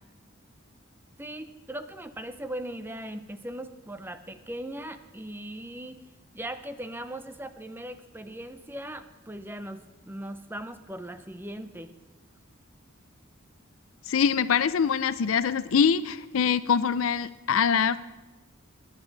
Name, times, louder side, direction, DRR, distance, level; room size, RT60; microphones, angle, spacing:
voice 1, 1.2-6.0 6.3-11.9, right 1 dB, 10° right, 10 dB, 0.6 m, -39 dB
voice 2, 14.1-18.0, left 7 dB, 75° left, 15 dB, 0.5 m, -24 dB
21.0 x 10.5 x 4.0 m, 1.1 s
head